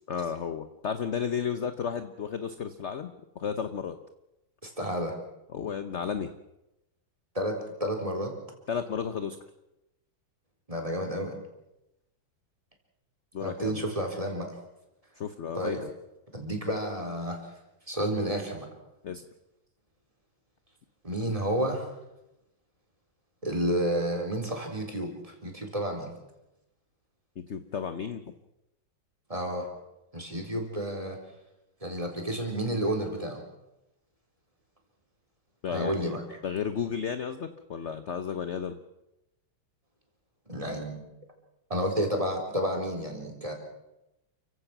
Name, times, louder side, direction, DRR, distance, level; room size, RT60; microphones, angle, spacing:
voice 1, 0.1-3.9 5.5-6.3 8.7-9.4 13.3-13.8 15.2-15.9 19.0-19.2 27.5-28.2 35.6-36.1 36.4-38.8, left 7 dB, 50° left, 10 dB, 0.9 m, -33 dB
voice 2, 4.6-5.2 7.3-8.3 10.7-11.4 13.4-14.6 15.5-15.8 16.3-17.4 17.9-18.7 21.0-21.9 23.4-26.1 29.3-29.7 30.1-31.2 31.8-33.4 35.7-36.2 40.5-41.0 41.7-43.5, right 1 dB, 15° right, 2 dB, 4.0 m, -30 dB
29.5 x 16.0 x 6.1 m, 0.92 s
omnidirectional pair, 2.2 m